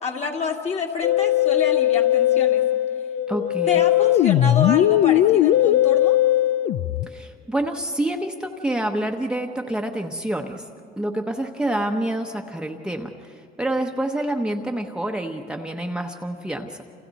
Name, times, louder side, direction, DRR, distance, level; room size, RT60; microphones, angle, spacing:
voice 1, 0.0-2.6 3.7-6.2, left 4 dB, 40° left, 1 dB, 2.4 m, -28 dB
Musical instrument, 1.0-7.1, left 13 dB, 75° left, 0.5 m, -19 dB
voice 2, 3.3-3.8 7.1-10.7 11.0-16.8, right 1 dB, 5° right, 2 dB, 1.0 m, -27 dB
28.5 x 27.5 x 4.1 m, 2.8 s
cardioid pair, 110°, 17 cm